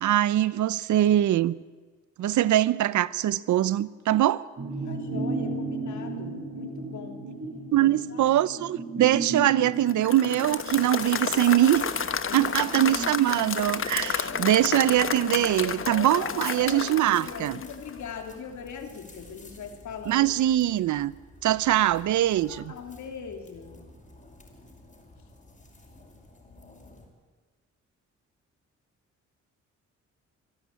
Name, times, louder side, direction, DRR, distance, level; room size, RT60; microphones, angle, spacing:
voice 1, 0.0-1.6 2.2-4.4 7.7-11.9 12.3-17.6 20.1-21.1 21.4-22.7, right 13 dB, 80° right, 0.7 m, -23 dB
sound 1, 4.6-14.4 14.7-14.8, right 3 dB, 50° right, 7.3 m, -35 dB
voice 2, 4.8-7.3 7.8-8.6 12.2-12.7 16.5-20.3 22.3-23.8, left 6 dB, 75° left, 3.1 m, -41 dB
Applause / Crowd, 9.9-18.1, left 6 dB, 45° left, 1.2 m, -31 dB
sound 2, 10.4-27.1, left 2 dB, 25° left, 5.8 m, -50 dB
24.0 x 12.5 x 8.9 m
cardioid pair, 80°, 30 cm